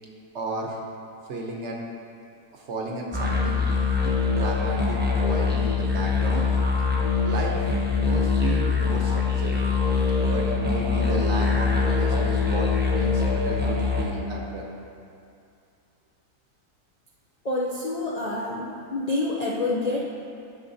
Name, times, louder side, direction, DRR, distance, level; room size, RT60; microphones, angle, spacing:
voice 1, 0.3-0.8 1.3-1.8 2.5-3.7 4.0-6.5 7.2-7.6 8.1-9.6 10.3-14.6 17.8-17.9, right 2 dB, 55° right, 0 dB, 1.0 m, -33 dB
sound 1, 3.1-14.0, left 5 dB, 10° right, 0.6 m, -23 dB
voice 2, 17.4-20.0, left 2 dB, 85° left, -4 dB, 0.3 m, -27 dB
11.5 x 5.9 x 2.7 m, 2.5 s
omnidirectional pair, 1.7 m